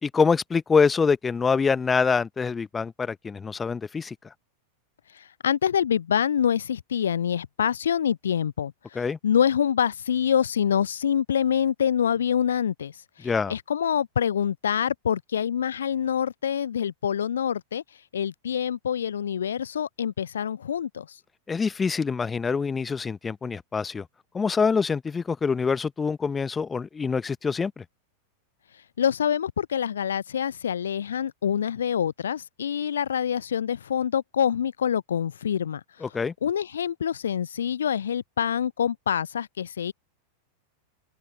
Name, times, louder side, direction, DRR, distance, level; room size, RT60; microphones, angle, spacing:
voice 1, 0.0-4.1 8.9-9.2 13.2-13.5 21.5-24.1 24.3-27.8 36.0-36.3, left 5 dB, 15° left, 1.0 m, -25 dB
voice 2, 5.2-12.9 13.2-17.8 18.1-21.1 29.0-35.8 36.4-39.9, left 8 dB, 65° left, 0.5 m, -26 dB
open air
figure-of-eight pair, 90°, 0 cm